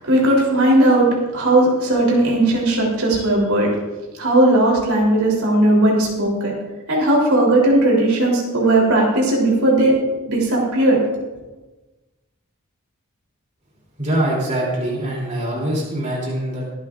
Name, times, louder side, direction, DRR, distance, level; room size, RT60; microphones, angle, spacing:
voice 1, 0.0-3.7 4.2-6.6 6.9-9.9 10.3-11.0, right 1 dB, 80° right, -3 dB, 3.3 m, -17 dB
voice 2, 14.0-16.7, right 1 dB, 35° right, -4 dB, 3.1 m, -23 dB
23.0 x 8.6 x 2.5 m, 1.2 s
head